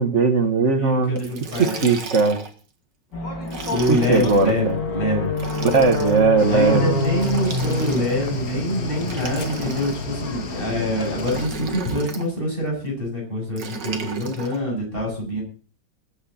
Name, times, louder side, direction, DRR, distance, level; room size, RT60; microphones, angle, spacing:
voice 1, 0.0-1.2 1.6-2.4 3.9-4.8 5.6-7.0, right 4 dB, 40° right, 8 dB, 1.7 m, -19 dB
voice 2, 0.7-1.9 3.7-5.3 6.5-15.4, equal, 30° left, -2 dB, 8.2 m, -25 dB
Liquid, 1.2-2.6 3.4-4.5 5.3-6.2 7.1-8.3 9.0-10.2 11.2-12.3 13.6-14.6, right 5 dB, 70° right, 2.4 m, -35 dB
sound 1, 3.1-11.8, left 2 dB, 65° left, 3.3 m, -28 dB
Cricket / Waves surf, 6.4-11.5, left 5 dB, 50° left, 2.1 m, -33 dB
20.5 x 9.5 x 4.3 m, 0.38 s
omnidirectional pair, 2.0 m